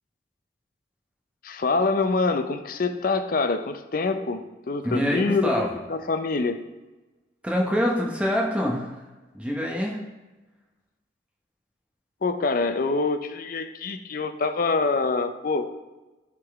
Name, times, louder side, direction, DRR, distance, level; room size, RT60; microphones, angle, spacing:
voice 1, 1.4-6.6 12.2-15.7, left 3 dB, 45° left, 8 dB, 0.5 m, -25 dB
voice 2, 4.8-5.7 7.4-9.0 9.3-10.0, equal, 5° right, -2 dB, 0.7 m, -25 dB
11.0 x 3.7 x 3.5 m, 1.1 s
head